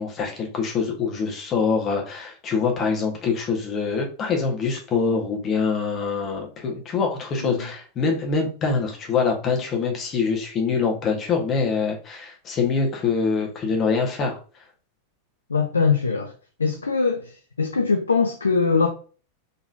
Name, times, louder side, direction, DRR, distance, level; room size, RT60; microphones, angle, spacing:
voice 1, 0.0-14.4, left 5 dB, 30° left, 1.3 m, -24 dB
voice 2, 15.5-16.3 16.6-18.9, left 4 dB, 75° left, 0.5 m, -22 dB
4.0 x 3.6 x 2.6 m
figure-of-eight pair, 90°, 0 cm